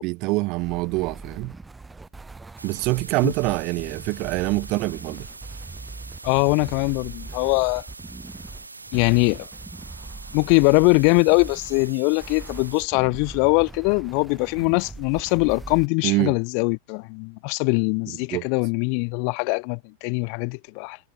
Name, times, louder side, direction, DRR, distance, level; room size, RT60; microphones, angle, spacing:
voice 1, 0.0-1.5 2.6-5.3 16.0-16.4 18.3-18.5, right 24 dB, 40° right, 0.8 m, -25 dB
sound 1, 0.5-15.9, right 3 dB, 10° right, 5.3 m, -41 dB
sound 2, 2.6-12.8, right 3 dB, 80° right, 1.4 m, -43 dB
voice 2, 6.2-7.8 8.9-9.5 10.3-21.0, left 40 dB or more, 45° left, 0.4 m, -22 dB
figure-of-eight pair, 90°, 0 cm